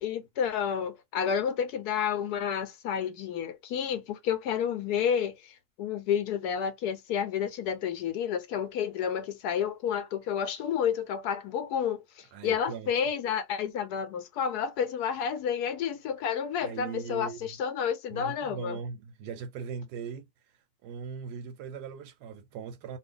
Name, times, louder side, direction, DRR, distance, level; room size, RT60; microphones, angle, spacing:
voice 1, 0.0-18.8, left 8 dB, 80° left, 1.1 m, -30 dB
voice 2, 12.3-12.9 16.6-17.5 18.1-20.3 20.8-23.0, right 6 dB, 90° right, 1.2 m, -39 dB
2.7 x 2.4 x 3.6 m
omnidirectional pair, 1.7 m